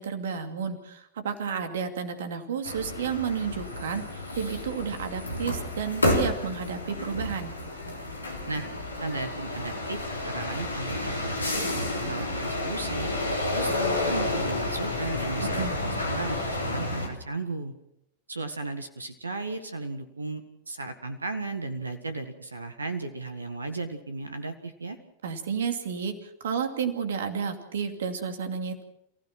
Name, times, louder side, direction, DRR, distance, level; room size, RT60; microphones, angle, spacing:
voice 1, 0.0-7.5 15.4-15.8 25.2-28.8, right 6 dB, 60° right, 7 dB, 2.5 m, -31 dB
sound 1, 2.6-17.1, left 1 dB, 80° left, 3.5 m, -30 dB
voice 2, 9.0-13.1 13.5-17.7 18.3-25.0, right 3 dB, 75° right, 9 dB, 1.7 m, -35 dB
28.5 x 16.0 x 6.0 m, 0.78 s
figure-of-eight pair, 90°, 0 cm